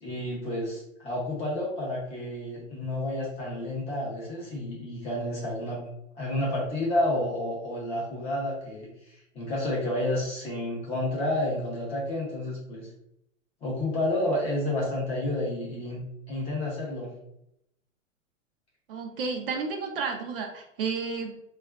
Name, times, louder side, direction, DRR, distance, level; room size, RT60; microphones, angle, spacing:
voice 1, 0.0-5.8 6.1-8.9 9.3-12.9 13.6-17.1, left 1 dB, 15° left, -5 dB, 0.5 m, -30 dB
voice 2, 18.9-21.4, right 4 dB, 45° right, 3 dB, 0.4 m, -32 dB
3.4 x 2.3 x 2.2 m, 0.79 s
hypercardioid pair, 140°, 40 cm